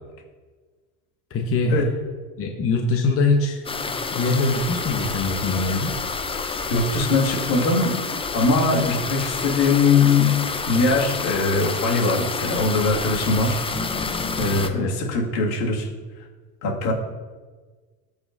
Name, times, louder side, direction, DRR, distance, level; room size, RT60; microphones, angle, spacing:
voice 1, 1.3-1.8 2.4-5.9 14.8-14.9, left 3 dB, 30° left, 3 dB, 0.9 m, -23 dB
sound 1, 3.7-14.7, left 4 dB, 10° left, 0.5 m, -28 dB
voice 2, 6.7-8.0 8.3-10.3 10.7-13.6 14.4-15.9 16.6-16.9, left 3 dB, 65° left, -1 dB, 2.3 m, -21 dB
14.5 x 4.9 x 2.7 m, 1.4 s
hypercardioid pair, 85°, 46 cm